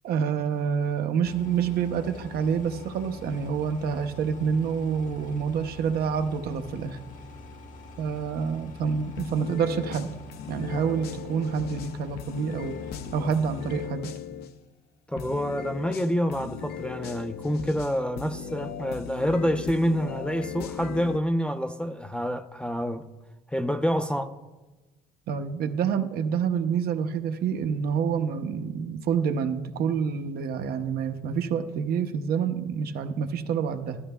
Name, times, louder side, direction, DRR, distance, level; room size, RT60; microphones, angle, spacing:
voice 1, 0.0-7.0 8.0-10.1 10.5-12.8 13.1-14.1 25.3-34.0, right 6 dB, 65° right, 0.7 m, -27 dB
sound 1, 1.2-13.9, left 2 dB, 50° left, 1.0 m, -45 dB
sound 2, 9.2-14.5 15.2-21.2, left 9 dB, 70° left, 0.6 m, -38 dB
voice 2, 15.1-23.1 23.5-24.3, equal, 5° left, 0.4 m, -27 dB
13.0 x 12.5 x 2.2 m
cardioid pair, 110°, 17 cm